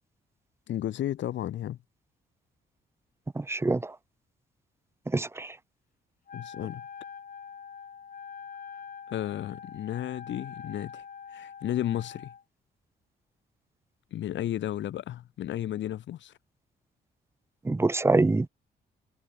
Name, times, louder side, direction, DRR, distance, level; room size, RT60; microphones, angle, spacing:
voice 1, 0.7-1.8 6.3-6.8 9.1-11.0 11.3-12.3 14.1-16.3, left 12 dB, 70° left, 1.0 m, -33 dB
voice 2, 3.4-3.9 5.1-5.5 17.6-18.5, right 2 dB, 15° right, 0.6 m, -25 dB
Wind instrument woodwind instrument, 6.3-12.4, left 7 dB, 45° left, 1.4 m, -44 dB
cardioid pair, 80°, 19 cm